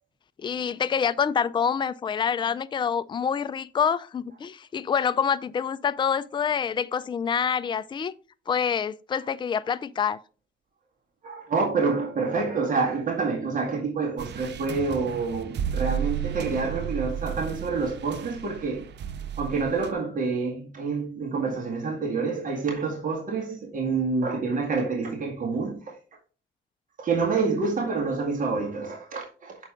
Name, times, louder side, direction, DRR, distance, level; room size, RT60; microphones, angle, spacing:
voice 1, 0.4-8.1 8.5-10.2, left 7 dB, 25° left, 0.4 m, -26 dB
voice 2, 11.2-18.8 19.4-25.9 27.0-29.6, right 4 dB, 40° right, 1.9 m, -27 dB
sound 1, 14.2-19.9, right 9 dB, 60° right, 0.6 m, -33 dB
6.7 x 4.7 x 3.8 m
cardioid pair, 90°, 20 cm